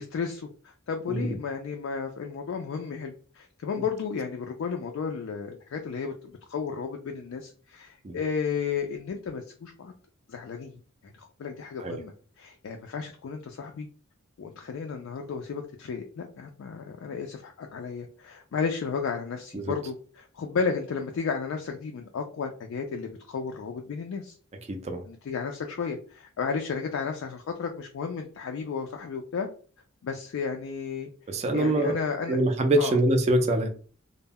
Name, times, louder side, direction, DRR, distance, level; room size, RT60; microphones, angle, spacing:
voice 1, 0.0-9.9 10.3-13.9 14.4-24.4 25.1-29.5 30.0-31.1 31.5-32.4 32.8-33.0, left 5 dB, 65° left, 3 dB, 0.3 m, -33 dB
voice 2, 24.7-25.0 31.3-32.0 32.3-33.9, right 1 dB, 30° right, 5 dB, 0.3 m, -24 dB
2.1 x 2.0 x 3.4 m, 0.42 s
head